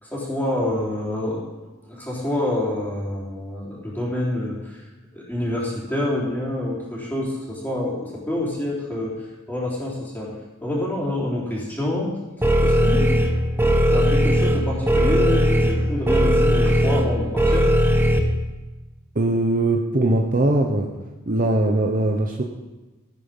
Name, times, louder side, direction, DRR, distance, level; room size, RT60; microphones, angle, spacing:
voice 1, 0.0-4.8 5.1-10.3 10.6-12.2 12.6-13.1 13.9-17.7, left 1 dB, 10° left, -6 dB, 4.0 m, -27 dB
sound 1, 12.4-18.2, equal, 10° right, 0.9 m, -18 dB
voice 2, 19.1-20.9 21.3-22.4, right 2 dB, 40° right, 2 dB, 1.0 m, -20 dB
16.0 x 8.9 x 5.5 m, 1.1 s
head